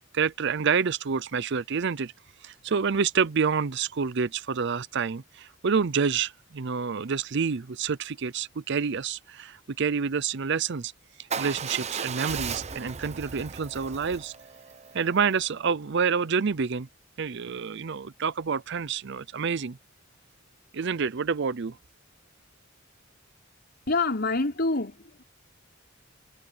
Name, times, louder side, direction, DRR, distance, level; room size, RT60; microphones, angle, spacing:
voice 1, 0.1-2.1 2.4-10.9 11.4-14.3 14.9-16.9 17.2-19.8 20.7-21.8, right 6 dB, 60° right, 0.6 m, -28 dB
Motorcycle / Engine starting / Idling, 11.3-15.4, right 6 dB, 35° right, 0.8 m, -36 dB
voice 2, 23.9-25.2, left 3 dB, 55° left, 5.1 m, -26 dB
head